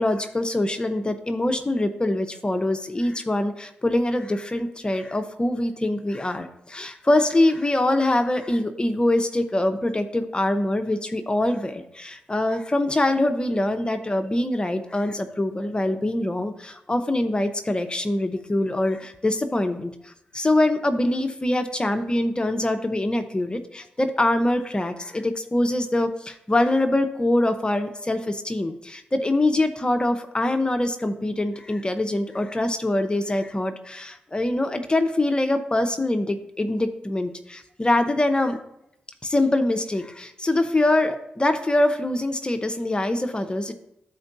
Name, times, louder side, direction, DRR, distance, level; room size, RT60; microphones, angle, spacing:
voice 1, 0.0-38.6 39.2-43.7, left 1 dB, 25° left, 7 dB, 0.7 m, -24 dB
12.5 x 4.5 x 2.7 m, 0.81 s
supercardioid pair, 45°, 4 cm